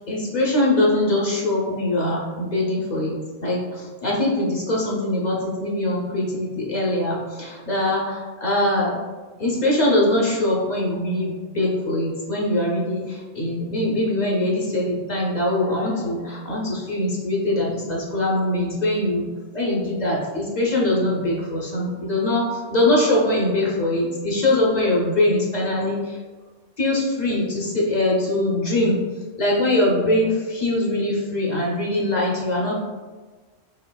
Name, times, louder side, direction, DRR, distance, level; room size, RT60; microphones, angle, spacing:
voice 1, 0.1-9.0 9.4-19.3 19.5-26.2 26.8-29.1 29.4-32.7, left 1 dB, 45° left, -3 dB, 0.7 m, -22 dB
4.3 x 3.3 x 2.3 m, 1.3 s
omnidirectional pair, 1.2 m